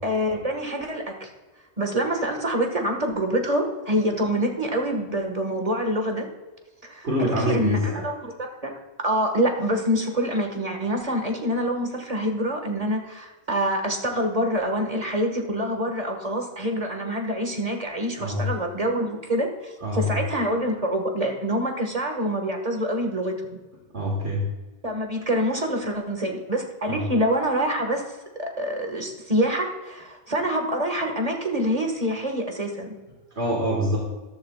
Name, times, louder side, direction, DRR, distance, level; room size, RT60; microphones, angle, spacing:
voice 1, 0.0-1.3 1.8-6.3 6.8-23.6 24.8-32.9, equal, 35° right, 3 dB, 1.7 m, -26 dB
voice 2, 7.0-8.0 18.2-18.5 19.8-20.2 23.9-24.4 26.9-27.0 33.3-34.0, equal, 75° right, -2 dB, 2.1 m, -25 dB
14.0 x 12.0 x 2.4 m, 1.2 s
omnidirectional pair, 1.1 m